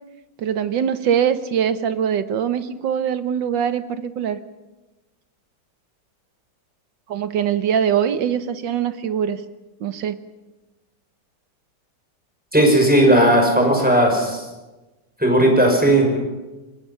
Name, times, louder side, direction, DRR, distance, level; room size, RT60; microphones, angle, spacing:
voice 1, 0.4-4.4 7.1-9.4 9.8-10.2, right 8 dB, 90° right, 11 dB, 1.8 m, -22 dB
voice 2, 12.5-14.4 15.2-16.2, right 1 dB, 5° right, 1 dB, 5.9 m, -16 dB
29.5 x 19.0 x 5.7 m, 1.1 s
omnidirectional pair, 1.9 m